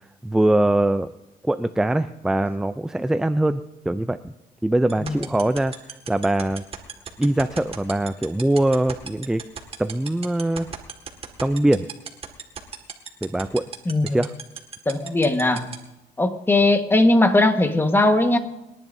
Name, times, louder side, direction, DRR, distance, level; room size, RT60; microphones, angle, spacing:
voice 1, 0.2-1.1 1.4-3.6 3.9-4.3 4.6-5.7 6.1-6.6 7.2-9.4 9.8-10.7 11.4-11.9 13.2-13.7 14.0-14.3, right 1 dB, 5° right, 11 dB, 0.4 m, -22 dB
sound 1, 4.9-15.7, right 6 dB, 35° right, 1.9 m, -33 dB
voice 2, 13.9-14.2 14.8-15.7 16.2-18.4, left 2 dB, 15° left, 7 dB, 1.4 m, -19 dB
30.0 x 11.0 x 2.7 m, 0.98 s
cardioid pair, 110°, 17 cm